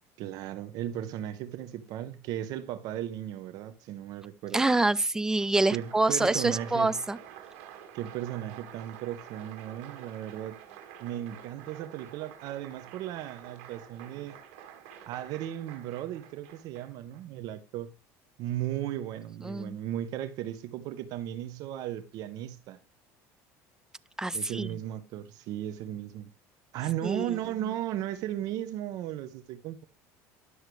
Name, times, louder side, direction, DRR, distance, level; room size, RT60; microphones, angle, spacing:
voice 1, 0.2-4.6 5.7-6.9 7.9-10.6 11.0-14.4 15.1-17.9 18.4-22.8 24.3-26.3 26.7-29.8, right 12 dB, 65° right, 0.7 m, -36 dB
voice 2, 4.5-7.2 19.4-19.8 24.2-24.8 27.0-27.4, right 2 dB, 10° right, 0.4 m, -26 dB
Applause, 5.3-17.2, right 9 dB, 85° right, 1.8 m, -48 dB
11.0 x 6.4 x 3.2 m
cardioid pair, 125°, 7 cm